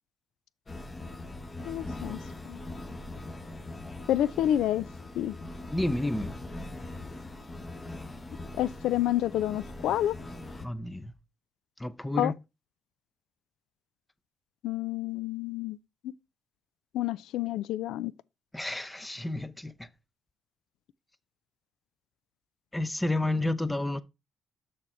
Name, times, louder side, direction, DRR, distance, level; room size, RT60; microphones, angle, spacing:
sound 1, 0.7-10.7, left 2 dB, 30° left, 1.2 m, -41 dB
voice 1, 1.6-2.2 2.5-2.6 4.1-4.9 5.2-5.4 8.6-10.2 12.2-12.3 14.6-15.8 16.0-16.1 16.9-18.1, left 12 dB, 85° left, 0.3 m, -28 dB
voice 2, 5.7-6.4 10.6-11.1 11.8-12.3 18.5-19.7 22.7-24.0, left 1 dB, 10° left, 0.6 m, -30 dB
6.7 x 4.9 x 4.3 m
cardioid pair, 90°, 0 cm